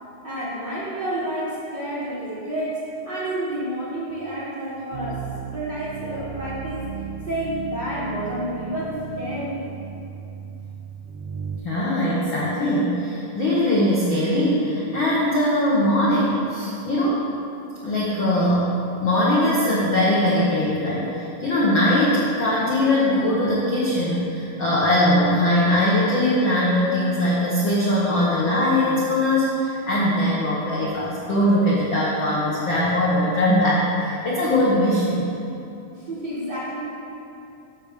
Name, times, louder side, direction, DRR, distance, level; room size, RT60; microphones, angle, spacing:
voice 1, 0.2-2.8 3.0-5.2 5.5-6.8 7.3-9.7 35.9-36.8, right 1 dB, 50° right, -10 dB, 1.3 m, -29 dB
sound 1, 4.9-11.6, right 6 dB, 70° right, 1.6 m, -35 dB
voice 2, 11.6-17.2 17.8-18.7 19.0-35.2, left 1 dB, 65° left, -7 dB, 1.2 m, -21 dB
13.0 x 6.2 x 3.6 m, 2.7 s
omnidirectional pair, 3.9 m